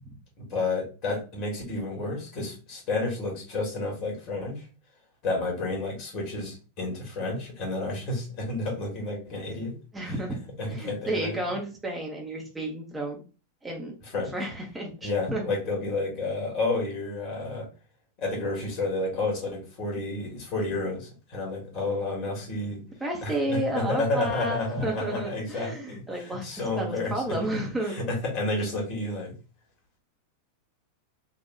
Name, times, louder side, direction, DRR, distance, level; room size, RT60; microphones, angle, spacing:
voice 1, 0.4-4.7 5.2-9.7 10.1-10.2 10.6-11.4 14.1-14.3 15.0-17.7 18.2-22.8 23.2-27.4 27.9-29.3, left 2 dB, 40° left, -1 dB, 2.0 m, -30 dB
voice 2, 9.9-10.4 10.7-13.2 13.6-13.9 14.3-15.4 23.0-28.0, right 1 dB, 10° right, -1 dB, 1.0 m, -31 dB
4.0 x 2.6 x 2.7 m, 0.33 s
figure-of-eight pair, 90°, 0 cm